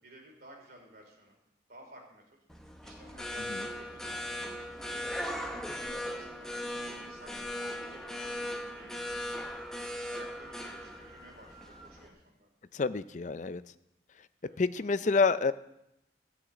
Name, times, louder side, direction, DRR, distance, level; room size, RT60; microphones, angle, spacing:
voice 1, 0.0-1.4 1.7-2.2 2.8-4.3 4.7-6.6 7.0-9.5 10.1-12.5 14.4-14.6, right 1 dB, 55° right, 1 dB, 3.2 m, -55 dB
sound 1, 2.5-12.1, left 1 dB, 5° left, 0.9 m, -39 dB
Wind instrument woodwind instrument, 8.2-11.9, right 5 dB, 35° right, 2.9 m, -56 dB
voice 2, 12.7-13.6 14.6-15.5, left 4 dB, 40° left, 14 dB, 0.5 m, -28 dB
14.5 x 6.2 x 8.2 m, 0.83 s
head